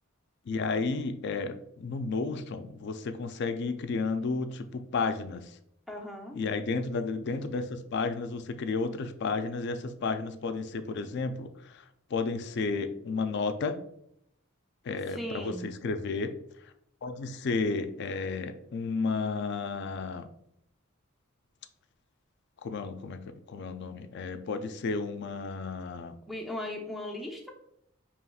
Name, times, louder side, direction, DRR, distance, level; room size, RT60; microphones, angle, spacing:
voice 1, 0.5-5.6 6.3-11.8 12.1-13.8 14.8-16.3 17.0-20.3 22.6-23.2 23.5-26.2, left 4 dB, 55° left, 9 dB, 0.4 m, -32 dB
voice 2, 5.9-6.4 15.1-15.7 26.3-27.5, left 1 dB, ahead, 1 dB, 0.6 m, -37 dB
5.6 x 2.9 x 2.3 m, 0.74 s
head